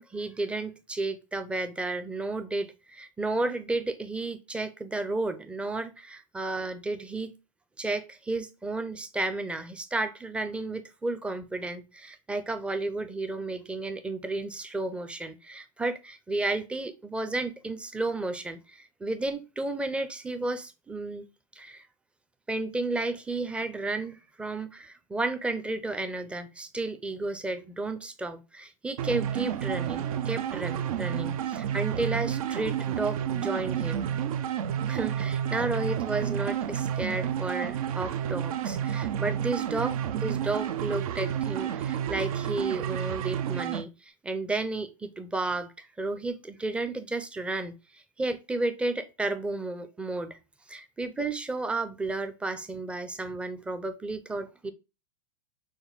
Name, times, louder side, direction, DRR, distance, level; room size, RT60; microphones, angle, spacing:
voice 1, 0.0-7.3 7.8-21.2 21.6-21.9 22.5-34.1 34.9-50.4 50.7-54.7, right 2 dB, 5° right, 0.5 m, -32 dB
sound 1, 29.0-43.8, right 9 dB, 75° right, 0.5 m, -30 dB
6.1 x 2.2 x 3.9 m
supercardioid pair, 130°, 18 cm